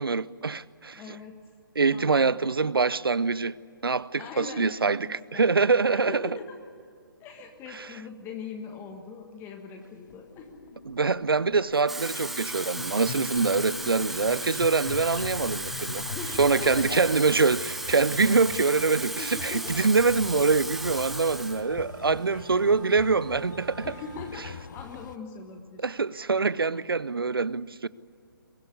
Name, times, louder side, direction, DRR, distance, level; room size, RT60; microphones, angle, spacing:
voice 1, 0.0-1.0 1.8-3.5 3.8-6.2 10.9-16.0 16.4-23.9 25.8-27.9, right 4 dB, 80° right, 0.6 m, -24 dB
voice 2, 1.0-1.4 1.9-2.4 4.2-4.7 5.0-6.6 7.2-10.6 16.1-17.1 18.2-18.3 19.0-19.9 22.3-22.5 23.8-25.8 26.7-26.8, left 5 dB, 20° left, 1.5 m, -41 dB
sound 1, 9.8-25.2, left 6 dB, 55° left, 1.0 m, -42 dB
Water tap faucet / Fill (with liquid), 11.7-21.6 22.0-22.3, right 1 dB, ahead, 0.9 m, -35 dB
Wind instrument woodwind instrument, 12.8-24.4, right 5 dB, 25° right, 4.1 m, -51 dB
23.0 x 17.5 x 9.8 m
figure-of-eight pair, 135°, 12 cm